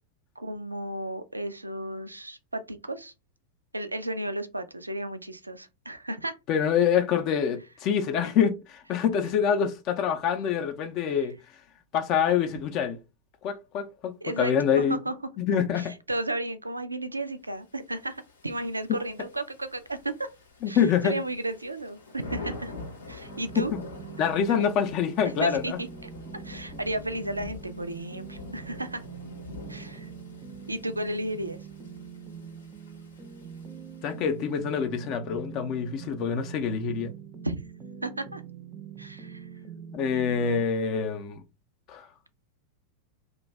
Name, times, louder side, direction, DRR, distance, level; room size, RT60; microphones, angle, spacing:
voice 1, 0.4-3.1 3.7-6.4 14.2-15.2 15.8-20.3 20.7-22.7 23.1-23.7 25.2-29.0 29.7-30.1 30.7-31.6 37.4-37.6 38.0-38.4 39.0-39.5, right 1 dB, 85° right, 0.3 m, -34 dB
voice 2, 6.5-11.3 11.9-13.0 13.4-15.0 15.4-15.9 20.6-21.2 23.6-23.7 24.2-25.8 34.0-37.1 39.9-41.4 41.9-42.1, left 7 dB, 40° left, 0.5 m, -26 dB
Thunder / Rain, 17.9-34.5, left 3 dB, 70° left, 0.7 m, -45 dB
sound 1, 23.3-40.6, right 7 dB, 25° right, 0.5 m, -44 dB
2.6 x 2.2 x 3.1 m
figure-of-eight pair, 90°, 0 cm